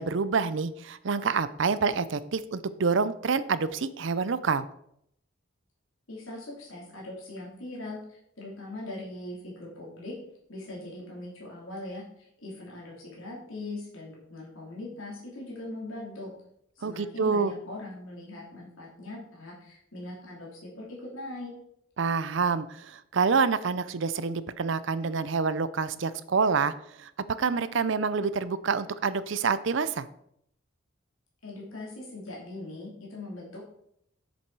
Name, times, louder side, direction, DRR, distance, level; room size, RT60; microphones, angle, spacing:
voice 1, 0.0-4.6 16.8-17.5 22.0-27.1 27.4-30.1, right 5 dB, 60° right, 15 dB, 0.5 m, -27 dB
voice 2, 6.1-10.1 10.5-16.3 16.8-21.5 31.4-33.7, left 2 dB, 75° left, -4 dB, 3.0 m, -41 dB
7.7 x 6.9 x 4.7 m, 0.72 s
head